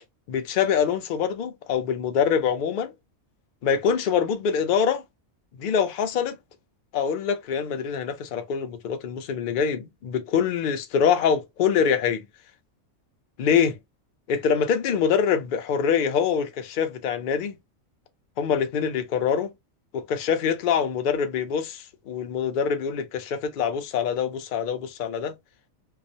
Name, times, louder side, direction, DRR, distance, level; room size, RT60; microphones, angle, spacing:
voice 1, 0.3-2.9 3.6-5.0 5.6-6.4 6.9-12.2 13.4-13.8 14.3-17.5 18.4-19.5 19.9-25.3, left 7 dB, 75° left, 0.4 m, -24 dB
2.4 x 2.0 x 2.6 m
omnidirectional pair, 1.4 m